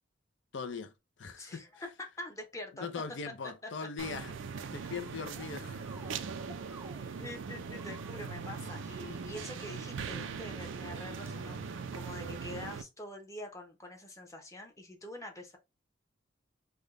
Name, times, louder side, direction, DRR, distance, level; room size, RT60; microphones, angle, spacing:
voice 1, 0.5-0.9 1.2-1.7 2.8-5.9, left 5 dB, 70° left, 0.5 m, -40 dB
voice 2, 1.4-2.9 7.2-15.6, left 1 dB, 15° left, 0.8 m, -45 dB
sound 1, 4.0-12.8, right 5 dB, 80° right, 0.4 m, -40 dB
sound 2, 4.8-5.5 5.8-7.2 7.7-9.5 10.2-10.4 11.2-11.3, right 3 dB, 10° right, 0.4 m, -57 dB
3.5 x 2.2 x 3.6 m
head